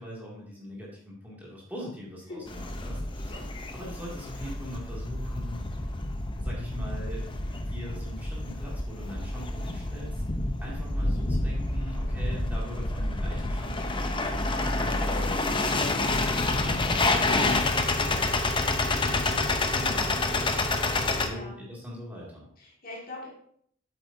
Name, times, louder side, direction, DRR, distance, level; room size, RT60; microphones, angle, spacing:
voice 1, 0.0-3.4 3.7-6.1 6.4-10.2 10.6-18.6 18.9-20.6 20.9-22.5, equal, 10° right, -6 dB, 2.4 m, -42 dB
sound 1, 2.5-21.3, left 2 dB, 25° left, 0.7 m, -28 dB
voice 2, 21.1-21.6 22.6-23.3, left 2 dB, 40° left, -3 dB, 2.3 m, -42 dB
8.1 x 8.0 x 2.7 m, 0.64 s
head